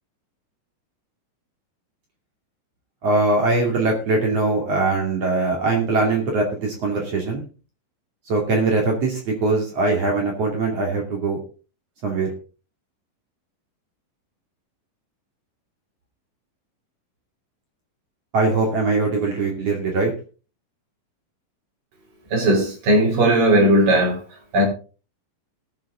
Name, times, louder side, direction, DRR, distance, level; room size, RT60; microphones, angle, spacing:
voice 1, 3.0-7.5 8.3-11.4 12.0-12.3 18.3-20.1, right 3 dB, 45° right, 3.4 m, -21 dB
voice 2, 22.3-24.2 24.5-24.6, right 1 dB, 75° right, 5.3 m, -17 dB
18.5 x 7.7 x 3.8 m
omnidirectional pair, 4.0 m